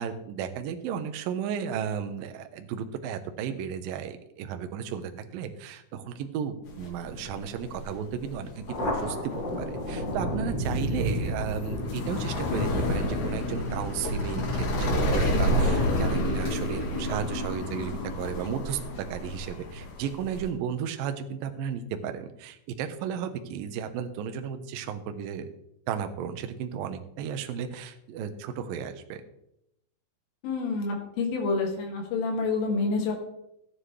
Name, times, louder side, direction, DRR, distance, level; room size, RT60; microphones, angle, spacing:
voice 1, 0.0-18.8 19.1-25.5 25.9-29.2, right 8 dB, 85° right, 7 dB, 2.0 m, -34 dB
sound 1, 6.7-20.5, left 1 dB, 65° left, 4.4 m, -30 dB
Thunder, 8.7-15.7, equal, 30° left, 2.5 m, -33 dB
voice 2, 30.4-33.1, left 4 dB, 85° left, 0 dB, 4.6 m, -28 dB
15.0 x 9.4 x 3.3 m, 0.82 s
omnidirectional pair, 5.5 m